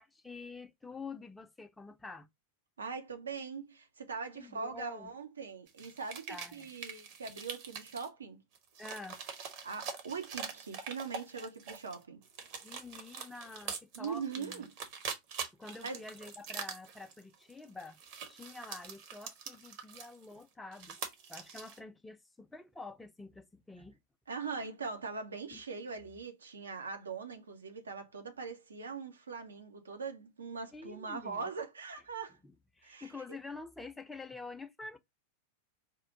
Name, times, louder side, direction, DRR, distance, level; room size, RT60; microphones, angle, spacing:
voice 1, 0.0-2.3 4.3-5.1 6.3-6.7 8.8-9.2 12.6-14.7 15.5-18.0 18.3-21.0 21.3-24.0 25.5-25.6 30.7-31.5 32.4-35.0, left 3 dB, 10° left, 0.5 m, -47 dB
voice 2, 2.8-8.4 9.6-12.2 13.9-14.7 15.8-16.0 24.3-32.4 32.8-33.1, right 5 dB, 70° right, 0.8 m, -41 dB
sound 1, 5.7-8.1 8.5-11.9 12.2-20.4 20.7-21.8, right 6 dB, 45° right, 1.0 m, -44 dB
4.4 x 2.5 x 3.6 m
figure-of-eight pair, 90°, 0 cm